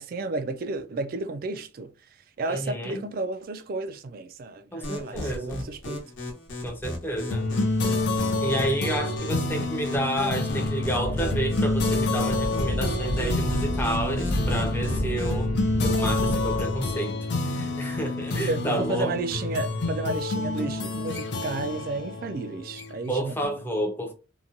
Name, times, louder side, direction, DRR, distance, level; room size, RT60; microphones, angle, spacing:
voice 1, 0.0-1.9 2.4-6.0 18.5-23.6, right 3 dB, 45° right, 0.3 m, -32 dB
voice 2, 2.5-3.0 4.7-5.7 6.6-7.5 8.4-15.5 15.8-17.2 17.5-19.1 23.1-24.1, right 1 dB, 10° left, 0.5 m, -30 dB
sound 1, 4.8-15.5, left 1 dB, 75° left, 1.0 m, -37 dB
sound 2, 7.3-23.2, left 2 dB, 60° left, 0.5 m, -28 dB
sound 3, 10.9-16.9, equal, 80° right, 0.7 m, -30 dB
2.8 x 2.2 x 2.5 m
head